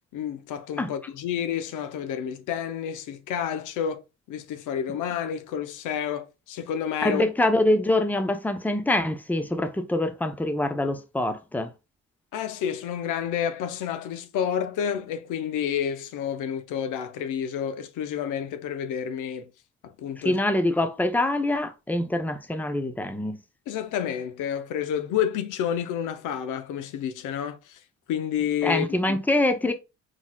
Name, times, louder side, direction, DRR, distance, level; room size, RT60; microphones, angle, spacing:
voice 1, 0.1-7.2 12.3-19.5 19.8-20.4 23.7-27.8 28.1-29.2, left 9 dB, 85° left, 0.7 m, -30 dB
voice 2, 7.0-11.7 20.2-23.4 28.6-29.7, left 1 dB, 5° left, 0.6 m, -24 dB
4.7 x 3.9 x 2.3 m
cardioid pair, 90°, 30 cm